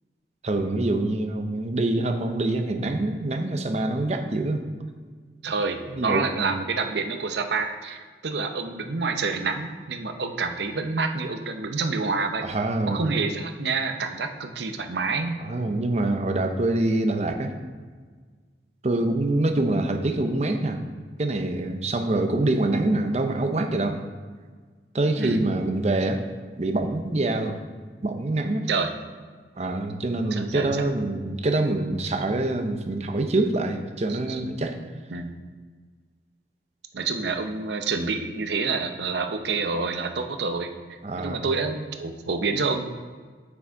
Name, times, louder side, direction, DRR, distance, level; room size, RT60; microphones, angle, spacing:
voice 1, 0.4-4.6 5.9-6.5 12.4-13.0 15.4-17.5 18.8-20.8 21.2-24.0 24.9-26.2 26.6-27.6 28.0-28.7 29.6-34.8 41.0-41.4, right 2 dB, 40° right, 6 dB, 0.6 m, -25 dB
voice 2, 5.4-12.5 12.9-15.4 25.2-25.4 28.7-28.9 30.3-30.8 34.1-34.4 35.1-35.3 36.9-40.7 41.2-43.0, right 4 dB, 80° right, 6 dB, 0.6 m, -28 dB
6.3 x 6.0 x 4.5 m, 1.5 s
head